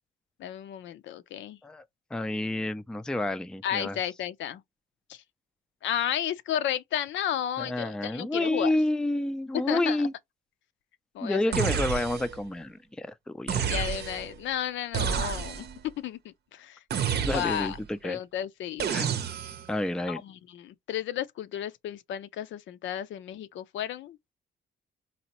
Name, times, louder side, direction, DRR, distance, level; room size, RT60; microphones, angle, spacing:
voice 1, 0.4-1.6 3.6-4.6 5.1-5.2 5.8-8.7 9.7-10.1 11.1-11.7 13.7-15.7 16.0-16.8 17.2-17.8 18.0-18.9 20.1-24.2, left 10 dB, 70° left, 0.5 m, -33 dB
voice 2, 2.1-4.0 7.6-10.1 11.2-13.6 17.2-18.2 18.9-19.1 19.7-20.2, left 1 dB, 5° left, 0.4 m, -29 dB
sound 1, 11.5-12.4 13.5-14.3 14.9-15.8 16.9-17.8 18.8-19.7, right 7 dB, 55° right, 0.7 m, -30 dB
4.1 x 2.9 x 2.9 m
cardioid pair, 90°, 20 cm